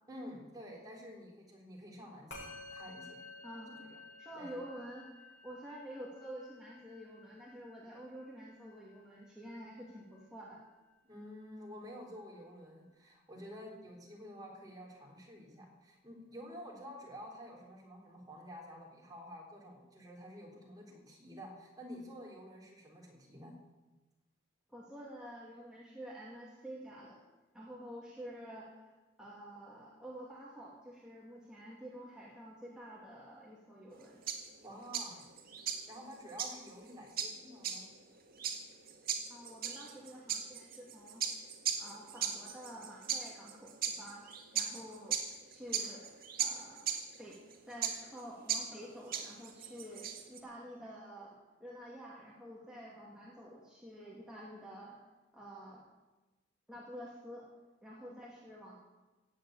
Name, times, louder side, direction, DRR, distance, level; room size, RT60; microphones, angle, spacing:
voice 1, 0.1-3.2 3.8-4.0 4.3-4.5 11.0-23.6 34.6-35.2 35.9-37.9, equal, 20° right, -2 dB, 3.8 m, -50 dB
Musical instrument, 2.3-11.8, left 3 dB, 70° left, 6.6 m, -54 dB
voice 2, 3.4-3.9 4.2-10.6 24.7-27.2 27.5-28.7 29.2-34.2 39.3-41.4 41.8-45.2 45.5-46.1 46.4-46.9 47.2-47.4 47.7-55.0 55.3-55.8 56.7-57.5 57.8-58.7, equal, 5° right, -5 dB, 2.3 m, -49 dB
sound 1, 33.9-50.4, right 7 dB, 50° right, 1.9 m, -38 dB
16.5 x 7.9 x 9.2 m, 1.1 s
head